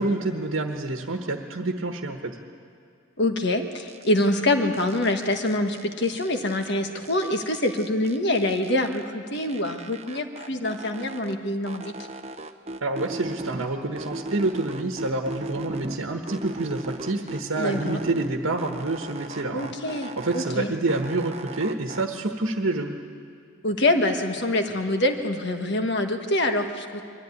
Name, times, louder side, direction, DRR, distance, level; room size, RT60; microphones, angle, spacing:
voice 1, 0.0-2.4 12.8-19.9 20.2-23.0, right 2 dB, 70° right, 3 dB, 1.2 m, -28 dB
voice 2, 3.2-11.9 17.6-18.0 19.5-20.7 23.6-27.0, left 1 dB, 55° left, 5 dB, 1.4 m, -25 dB
sound 1, 3.9-4.4 4.7-6.7 7.0-9.0 9.3-11.4 11.7-13.7 14.0-16.0 16.3-18.3 18.6-20.6 20.9-22.0, right 2 dB, 30° right, 0.7 m, -38 dB
22.5 x 13.5 x 9.8 m, 2.2 s
head